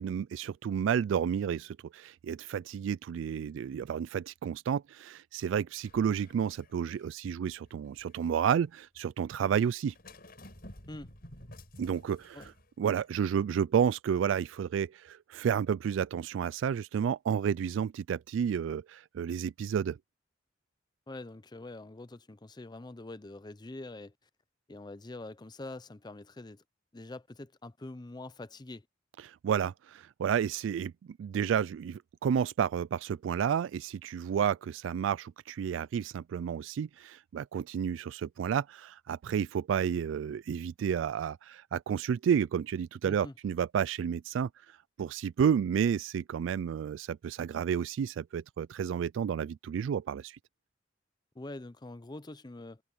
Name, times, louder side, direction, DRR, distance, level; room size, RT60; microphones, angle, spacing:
voice 1, 0.0-9.9 11.8-12.4 12.8-20.0 29.2-30.9 31.2-50.4, right 8 dB, 85° right, 0.3 m, -31 dB
sound 1, 5.8-8.4 9.9-12.7 13.1-13.2, left 1 dB, 55° left, 7.2 m, -52 dB
voice 2, 21.1-24.1 24.7-26.6 26.9-28.9 43.0-43.3 51.3-52.8, left 2 dB, 20° left, 0.6 m, -44 dB
head